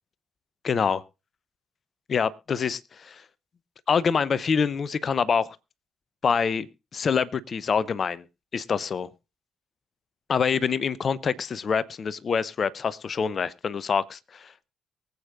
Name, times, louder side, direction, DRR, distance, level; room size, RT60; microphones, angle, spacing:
voice 1, 0.6-1.0 2.1-3.2 3.9-5.6 6.2-6.7 6.9-8.2 8.5-9.1 10.3-14.7, left 6 dB, 50° left, 18 dB, 0.7 m, -26 dB
23.5 x 8.3 x 2.5 m, 0.29 s
hypercardioid pair, 45°, 0 cm